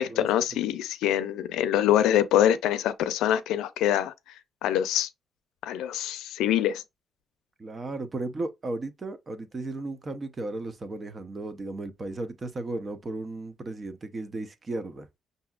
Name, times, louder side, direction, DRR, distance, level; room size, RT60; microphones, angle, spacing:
voice 1, 0.0-4.1 4.6-5.1 5.6-6.8, left 11 dB, 90° left, 0.5 m, -24 dB
voice 2, 7.6-15.1, right 2 dB, 35° right, 0.8 m, -35 dB
6.8 x 2.7 x 2.4 m
cardioid pair, 90°, 0 cm